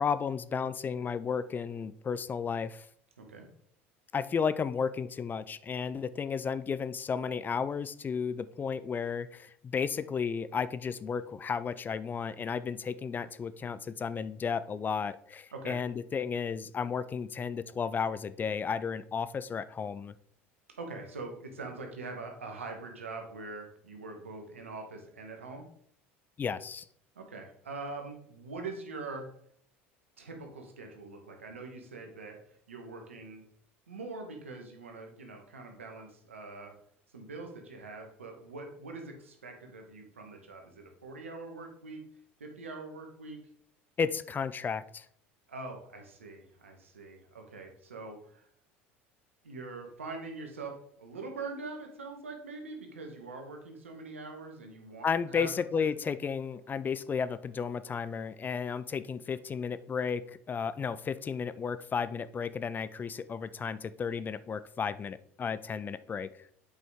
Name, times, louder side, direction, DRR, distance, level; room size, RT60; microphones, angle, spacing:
voice 1, 0.0-2.9 4.1-20.1 26.4-26.8 44.0-45.1 55.0-66.3, left 6 dB, 30° left, 15 dB, 0.4 m, -33 dB
voice 2, 20.8-25.6 27.1-29.3 30.2-33.4 33.9-36.7 37.1-42.0 42.4-43.4 45.5-48.5 49.4-55.5 55.8-55.9, right 3 dB, 90° right, 3 dB, 1.4 m, -43 dB
8.1 x 5.1 x 3.6 m, 0.66 s
hypercardioid pair, 75°, 7 cm